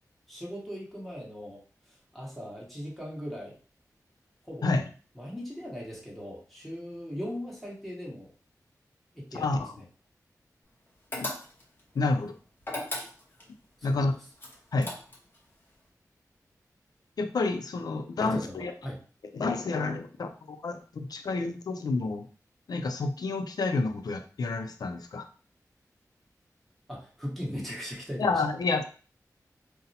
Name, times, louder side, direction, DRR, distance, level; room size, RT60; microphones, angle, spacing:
voice 1, 0.3-3.6 4.4-4.7 5.1-8.3 9.1-9.8 13.8-14.1 18.2-19.0 26.9-28.4, equal, ahead, -4 dB, 1.0 m, -39 dB
voice 2, 9.3-9.7 11.1-11.3 12.0-12.3 13.8-14.2 14.7-14.9 17.2-18.7 19.3-22.3 22.7-25.3 28.2-28.8, left 3 dB, 85° left, 7 dB, 0.4 m, -29 dB
sound 1, 11.1-11.8 12.6-13.5 14.4-15.4, left 1 dB, 35° left, 0.8 m, -36 dB
4.0 x 2.0 x 2.7 m, 0.39 s
wide cardioid pair, 100°, 6 cm